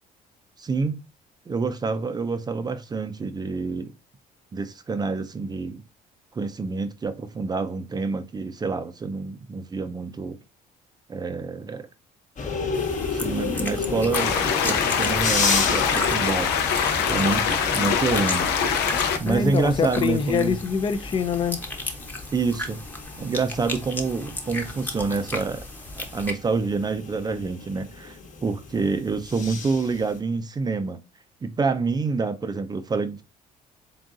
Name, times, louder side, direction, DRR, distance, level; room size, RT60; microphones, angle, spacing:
voice 1, 0.6-1.1 1.5-3.9 4.5-5.8 6.3-10.4 11.1-11.9 13.0-16.6 17.1-18.5 19.2-20.6 22.3-22.8 23.2-25.6 26.0-31.0 31.4-33.2, right 4 dB, 25° right, 0.5 m, -27 dB
sound 1, 12.4-30.2, left 4 dB, 45° left, 1.1 m, -33 dB
sound 2, 12.7-26.3, left 1 dB, 10° left, 0.9 m, -35 dB
sound 3, 14.1-19.2, left 7 dB, 90° left, 0.7 m, -23 dB
voice 2, 19.3-21.6, left 6 dB, 30° left, 0.5 m, -24 dB
3.8 x 3.7 x 2.4 m
cardioid pair, 110°, 17 cm